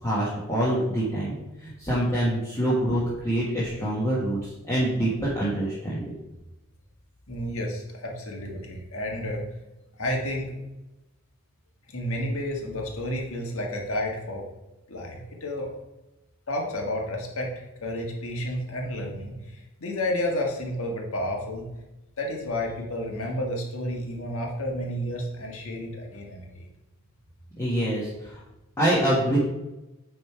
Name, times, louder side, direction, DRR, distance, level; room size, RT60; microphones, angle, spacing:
voice 1, 0.0-1.3 1.6-6.1 27.6-28.4 28.8-29.4, right 1 dB, 15° left, -8 dB, 1.4 m, -25 dB
voice 2, 7.3-9.4 10.0-10.6 11.9-14.5 14.9-15.7 16.5-21.7 22.2-26.7, left 1 dB, 65° left, 0 dB, 1.6 m, -31 dB
9.2 x 3.6 x 4.5 m, 0.99 s
head